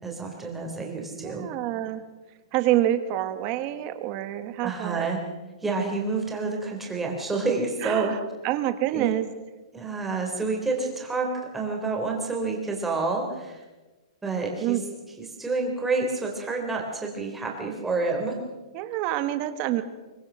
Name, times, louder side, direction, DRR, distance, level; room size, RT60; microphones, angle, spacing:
voice 1, 0.0-1.5 4.6-5.2 5.6-8.1 8.9-9.1 9.7-13.6 14.2-14.8 15.2-18.4, right 3 dB, 5° right, 0 dB, 3.7 m, -28 dB
voice 2, 1.2-2.0 2.5-5.1 7.8-8.2 8.4-9.3 14.6-14.8 18.7-19.8, right 13 dB, 30° right, 10 dB, 1.6 m, -27 dB
24.0 x 23.0 x 6.3 m, 1.2 s
hypercardioid pair, 165°, 3 cm